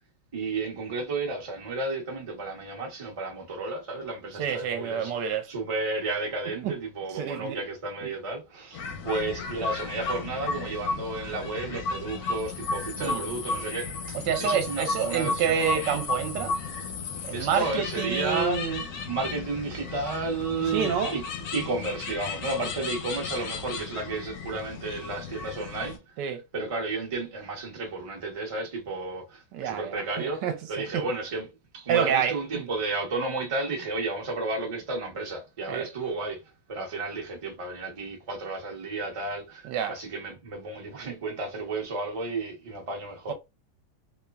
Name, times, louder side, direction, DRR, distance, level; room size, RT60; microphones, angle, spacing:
voice 1, 0.3-15.9 17.3-18.8 19.1-21.2 21.5-26.0 26.5-30.4 30.7-36.4 36.7-43.3, right 3 dB, 50° right, 0.4 m, -32 dB
voice 2, 4.4-5.5 6.6-6.7 7.1-7.6 13.0-13.2 14.3-16.6 17.2-18.8 20.7-21.1 26.2-26.4 29.5-31.0 31.9-32.4 35.7-35.9 39.6-40.0 43.3-43.4, right 8 dB, 75° right, 1.2 m, -28 dB
sound 1, 8.7-26.0, left 4 dB, 70° left, 0.9 m, -34 dB
3.0 x 2.2 x 2.2 m
omnidirectional pair, 2.0 m